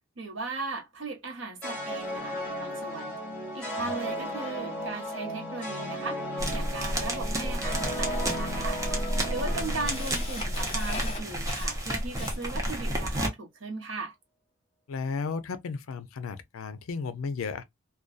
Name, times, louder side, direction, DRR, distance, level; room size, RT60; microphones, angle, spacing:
voice 1, 0.2-3.2 3.5-6.2 6.5-8.8 9.3-14.1, right 3 dB, 65° right, 0.8 m, -37 dB
sound 1, 1.6-10.9, equal, 5° left, 1.6 m, -35 dB
sound 2, 6.4-13.3, right 1 dB, 15° right, 0.6 m, -31 dB
Camera, 7.7-7.8 8.7-8.8 9.2-12.7, left 3 dB, 30° left, 0.7 m, -39 dB
voice 2, 9.5-9.9 14.9-17.6, left 5 dB, 90° left, 0.4 m, -34 dB
2.5 x 2.2 x 2.2 m
head